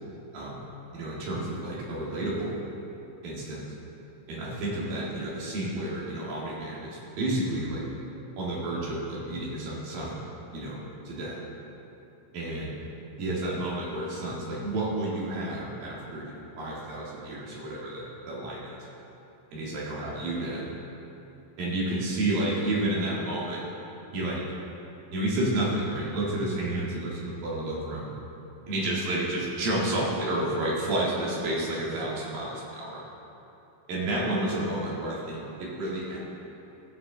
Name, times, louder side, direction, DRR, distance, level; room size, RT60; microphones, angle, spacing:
voice 1, 0.9-2.6 3.2-3.7 4.3-7.9 8.4-10.2 10.5-11.4 12.3-12.8 13.2-18.8 19.5-20.7 21.6-23.6 24.1-24.4 25.1-28.1 28.7-33.0 33.9-36.2, right 1 dB, 90° right, -5 dB, 3.7 m, -31 dB
15.0 x 7.6 x 3.8 m, 2.8 s
omnidirectional pair, 3.9 m